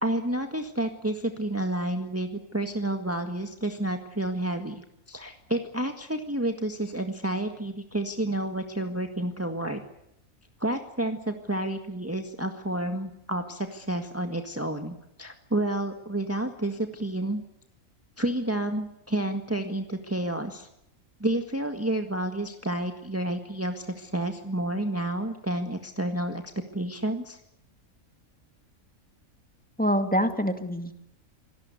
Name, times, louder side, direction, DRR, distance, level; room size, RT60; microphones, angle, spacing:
voice 1, 0.0-9.8 10.6-17.4 18.2-20.7 21.2-26.4 26.7-27.4, right 1 dB, 10° right, 5 dB, 1.7 m, -30 dB
voice 2, 29.8-31.0, equal, 5° left, 7 dB, 2.2 m, -25 dB
26.0 x 18.5 x 8.3 m, 0.81 s
omnidirectional pair, 1.5 m